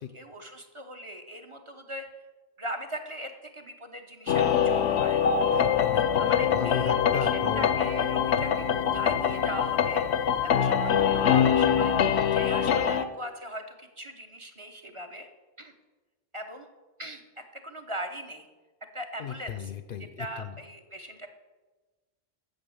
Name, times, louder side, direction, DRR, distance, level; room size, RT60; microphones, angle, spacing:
voice 1, 0.1-2.1 2.6-5.3 6.2-10.1 10.4-11.9 12.3-15.3 15.6-15.7 16.3-16.7 17.0-17.2 17.5-18.5 18.9-19.7 20.2-21.3, equal, 30° right, 4 dB, 0.8 m, -40 dB
sound 1, 4.3-13.0, left 8 dB, 80° left, 0.9 m, -24 dB
voice 2, 5.5-7.8 19.2-20.5, left 7 dB, 60° left, 10 dB, 0.7 m, -35 dB
9.1 x 7.0 x 7.0 m, 1.2 s
omnidirectional pair, 1.1 m